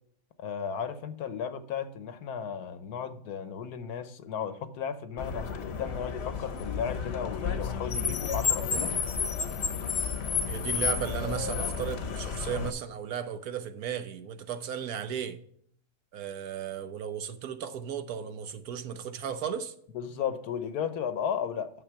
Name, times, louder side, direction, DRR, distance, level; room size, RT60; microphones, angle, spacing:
voice 1, 0.4-8.9 19.9-21.7, left 7 dB, 90° left, 1.4 m, -35 dB
Car, 5.2-12.7, left 6 dB, 50° left, 1.0 m, -31 dB
voice 2, 10.5-15.4 16.1-19.7, right 8 dB, 75° right, 1.3 m, -35 dB
9.8 x 6.8 x 4.6 m
omnidirectional pair, 1.6 m